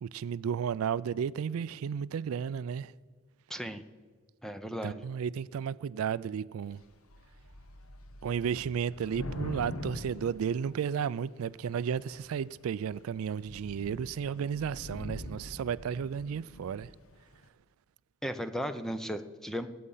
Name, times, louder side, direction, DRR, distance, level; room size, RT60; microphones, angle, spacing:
voice 1, 0.0-2.9 4.8-6.8 8.2-16.9, right 7 dB, 80° right, 0.3 m, -33 dB
voice 2, 3.5-3.8 4.4-5.0 18.2-19.7, equal, ahead, 0.6 m, -36 dB
Thunder / Rain, 6.7-6.9 7.1-11.2 12.0-12.4 12.8-13.0 13.2-17.0, left 1 dB, 85° left, 1.2 m, -43 dB
19.0 x 8.6 x 5.6 m
head